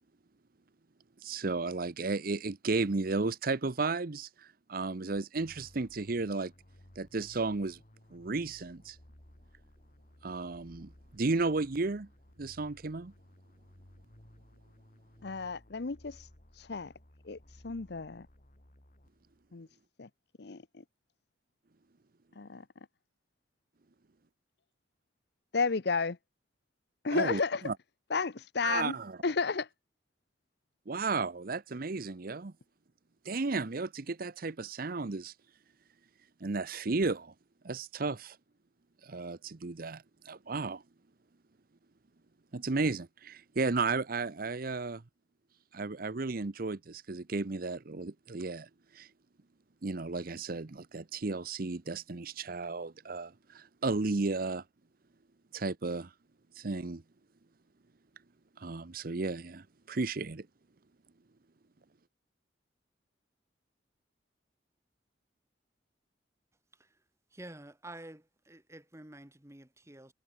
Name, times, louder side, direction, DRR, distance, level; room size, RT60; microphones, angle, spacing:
voice 1, 1.2-6.5 7.0-7.8 8.1-9.0 10.2-12.1 12.4-13.1 27.1-27.8 28.6-29.2 30.9-32.5 33.2-35.3 36.4-37.3 37.6-38.4 39.0-40.8 42.5-45.0 45.7-49.1 49.8-54.6 55.5-56.1 56.6-57.0 58.6-60.5, right 3 dB, 50° right, 0.8 m, -34 dB
sound 1, 5.4-19.5, left 1 dB, 45° left, 3.2 m, -59 dB
voice 2, 15.2-16.3 16.5-16.9 17.3-17.4 17.6-18.3 19.5-19.7 20.0-20.1 20.4-20.6 22.4-22.6 25.5-26.2 27.0-27.6 28.1-28.9 29.2-29.7, left 4 dB, 60° left, 0.8 m, -32 dB
voice 3, 67.3-70.1, right 1 dB, 15° right, 1.8 m, -49 dB
head